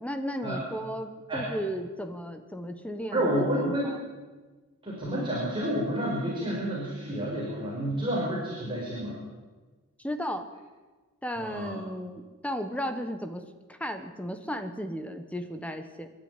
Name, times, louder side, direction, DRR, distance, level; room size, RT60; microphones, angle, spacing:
voice 1, 0.0-3.3 3.6-4.0 5.1-5.3 10.0-10.5 11.2-13.4 13.7-16.1, equal, 5° left, 8 dB, 1.3 m, -35 dB
voice 2, 3.1-3.9 4.8-9.2 11.4-11.8, right 1 dB, 20° right, -4 dB, 5.8 m, -29 dB
27.0 x 12.0 x 9.9 m, 1.3 s
head